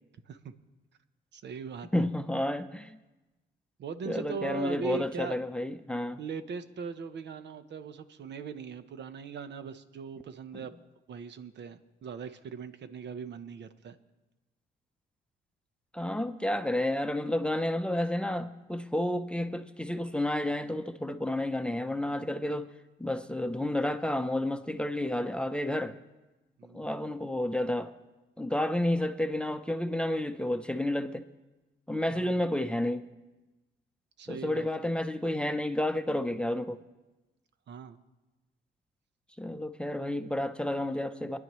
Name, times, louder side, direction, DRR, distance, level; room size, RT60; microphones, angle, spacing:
voice 1, 1.3-1.9 3.8-5.4 6.2-10.7 11.1-14.0 26.6-26.9 32.1-32.3 34.2-34.7 37.7-38.0, right 6 dB, 60° right, 10 dB, 1.0 m, -40 dB
voice 2, 1.9-3.0 4.0-6.2 10.5-10.6 15.9-22.7 23.0-26.0 26.7-27.9 28.4-31.2 31.9-33.1 34.3-36.8 39.4-41.4, left 1 dB, 5° left, 8 dB, 0.7 m, -31 dB
26.0 x 10.5 x 3.2 m, 1.1 s
cardioid pair, 90°, 20 cm